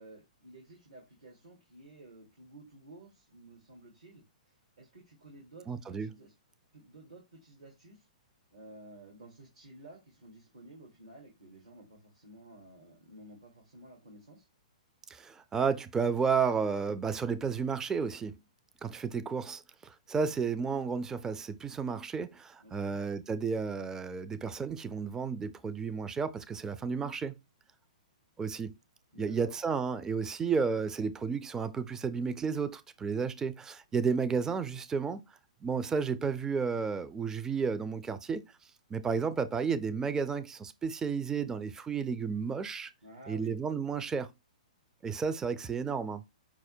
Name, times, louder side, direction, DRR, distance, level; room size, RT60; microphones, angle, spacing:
voice 1, 0.0-6.3 6.7-8.1 8.5-14.5 22.6-23.0 29.1-29.6 43.0-43.5, right 2 dB, 80° right, 1.5 m, -53 dB
voice 2, 5.7-6.1 15.1-18.3 18.8-27.4 28.4-28.7 29.2-35.2 35.6-38.4 38.9-42.9 43.3-44.3 45.0-46.2, right 5 dB, 15° right, 0.4 m, -32 dB
5.7 x 2.1 x 4.3 m
hypercardioid pair, 120°, 4 cm